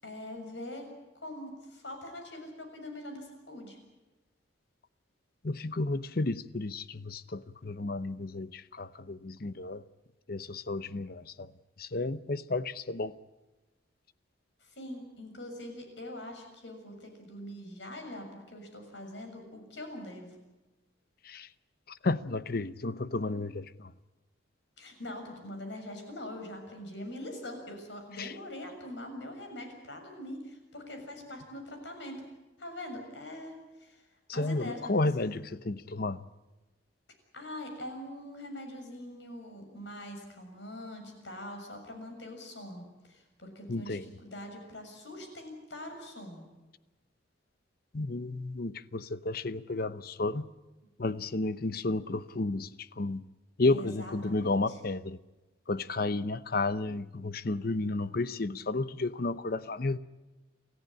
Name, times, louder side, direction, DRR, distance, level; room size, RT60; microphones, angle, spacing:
voice 1, 0.0-0.9 1.2-3.8 14.6-20.4 24.8-32.2 32.6-34.8 35.2-35.3 37.3-46.5 53.6-54.8, left 1 dB, 70° left, 6.9 m, -43 dB
voice 2, 5.4-9.8 10.3-11.5 11.8-13.2 21.2-21.5 21.9-23.9 28.2-28.3 34.3-36.2 43.7-44.1 47.9-50.5 51.0-53.3 53.6-55.2 55.7-60.0, left 2 dB, 50° left, 0.8 m, -32 dB
28.0 x 15.0 x 10.0 m
head